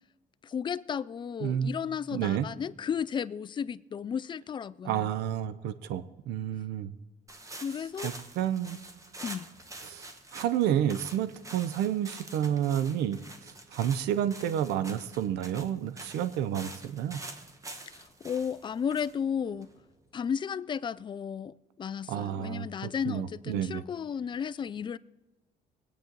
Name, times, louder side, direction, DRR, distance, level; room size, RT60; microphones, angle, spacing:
voice 1, 0.4-5.1 7.5-8.1 9.2-9.5 17.9-19.7 20.1-25.0, left 7 dB, 30° left, 0.4 m, -34 dB
voice 2, 1.4-1.7 2.1-2.5 4.8-6.9 8.0-8.8 9.8-10.0 10.3-13.2 13.4-17.2 22.1-23.8, right 10 dB, 85° right, 0.7 m, -30 dB
sound 1, 7.3-20.1, right 2 dB, 20° right, 1.2 m, -46 dB
21.0 x 8.4 x 3.9 m
cardioid pair, 110°, 17 cm